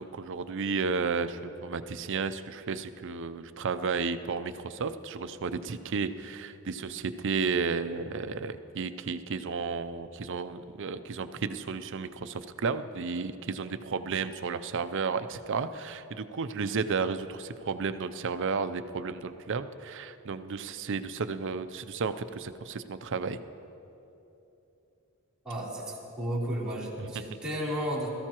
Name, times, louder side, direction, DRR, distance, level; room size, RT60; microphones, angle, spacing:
voice 1, 0.0-23.4 27.0-27.1, right 5 dB, 55° right, 11 dB, 0.5 m, -33 dB
voice 2, 25.4-28.1, equal, 5° right, -9 dB, 3.4 m, -33 dB
21.5 x 14.0 x 3.0 m, 2.9 s
head